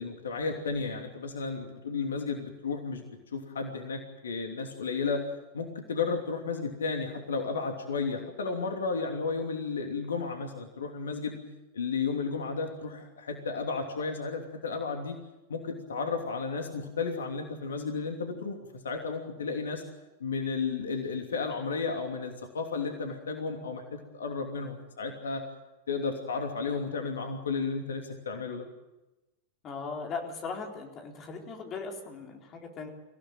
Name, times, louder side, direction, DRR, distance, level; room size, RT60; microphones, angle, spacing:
voice 1, 0.0-3.0 3.3-5.2 5.5-11.4 11.7-15.2 15.5-18.6 18.8-19.8 20.2-25.4 25.9-28.7, left 4 dB, 65° left, 4 dB, 2.9 m, -33 dB
voice 2, 29.6-32.9, left 4 dB, 30° left, 2 dB, 4.0 m, -38 dB
25.0 x 16.5 x 9.0 m, 1.0 s
figure-of-eight pair, 90°, 0 cm